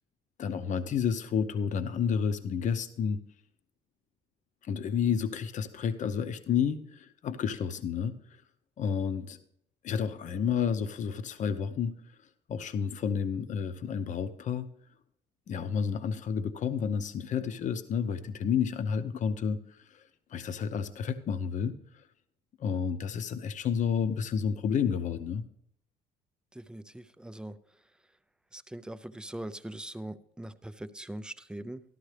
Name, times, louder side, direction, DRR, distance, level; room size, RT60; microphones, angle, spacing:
voice 1, 0.4-3.2 4.6-8.2 8.8-9.4 9.8-11.9 12.5-14.7 15.5-20.0 20.3-21.7 22.6-25.4, left 7 dB, 45° left, 10 dB, 0.7 m, -30 dB
voice 2, 26.5-27.6 28.5-31.8, right 1 dB, 5° right, 13 dB, 0.4 m, -41 dB
13.5 x 11.5 x 3.3 m, 0.72 s
cardioid pair, 110°, 17 cm